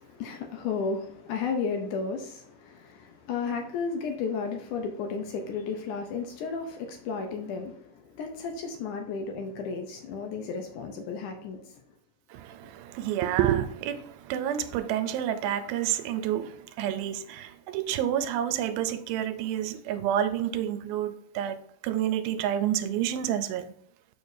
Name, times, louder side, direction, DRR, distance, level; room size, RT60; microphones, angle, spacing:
voice 1, 0.0-11.6, left 5 dB, 75° left, 2.0 m, -33 dB
voice 2, 12.3-23.7, right 10 dB, 85° right, 2.5 m, -29 dB
6.9 x 6.6 x 2.6 m
omnidirectional pair, 4.2 m